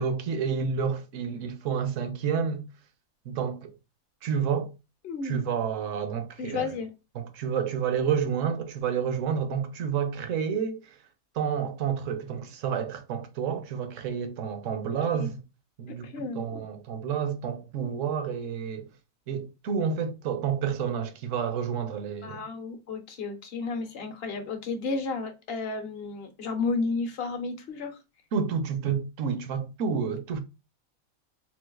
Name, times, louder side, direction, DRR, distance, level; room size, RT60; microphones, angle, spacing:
voice 1, 0.0-2.6 3.3-3.7 4.2-4.7 5.2-6.7 7.2-10.9 11.3-15.4 15.8-16.1 16.3-18.9 19.3-22.4 28.3-30.4, right 7 dB, 65° right, 1.0 m, -29 dB
voice 2, 5.0-5.4 6.4-6.9 15.1-15.3 15.9-16.6 22.2-28.0, left 4 dB, 50° left, 0.8 m, -32 dB
3.9 x 2.4 x 2.3 m
omnidirectional pair, 1.5 m